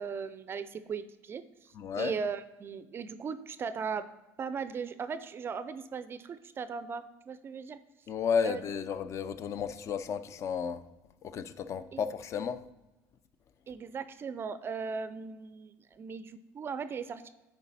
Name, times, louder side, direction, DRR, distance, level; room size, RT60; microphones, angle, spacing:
voice 1, 0.0-4.1 4.4-7.8 8.4-8.6 11.9-12.0 13.7-17.3, right 6 dB, 35° right, 0.4 m, -38 dB
voice 2, 1.7-2.1 8.1-10.8 11.2-12.7, left 6 dB, 45° left, 0.5 m, -33 dB
9.4 x 4.6 x 4.0 m
cardioid pair, 115°, 7 cm